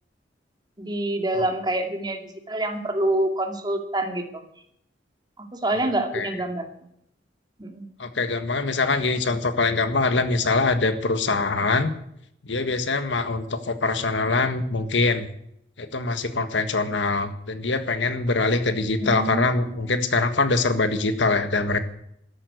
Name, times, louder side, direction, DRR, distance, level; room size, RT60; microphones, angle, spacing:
voice 1, 0.8-4.4 5.4-6.7 7.6-7.8 19.0-20.0, right 1 dB, 25° right, 5 dB, 2.2 m, -27 dB
voice 2, 8.0-11.9 12.4-15.3 15.8-21.8, left 3 dB, 75° left, 9 dB, 1.6 m, -23 dB
13.5 x 11.5 x 8.0 m, 0.71 s
head